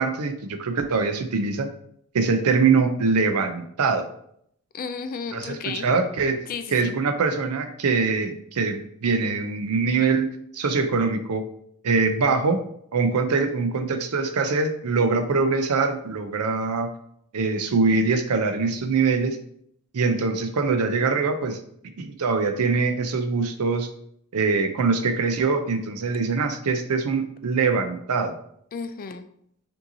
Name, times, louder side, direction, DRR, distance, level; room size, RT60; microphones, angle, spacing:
voice 1, 0.0-1.7 2.1-4.1 5.3-5.6 5.8-6.4 6.7-10.3 10.5-11.4 11.8-12.6 12.9-16.9 17.3-19.4 19.9-21.6 22.0-23.9 24.3-28.4, right 4 dB, 80° right, 8 dB, 0.5 m, -23 dB
voice 2, 4.7-5.9 6.5-7.0 28.7-29.2, left 5 dB, 40° left, 9 dB, 0.3 m, -33 dB
5.3 x 2.7 x 2.7 m, 0.69 s
head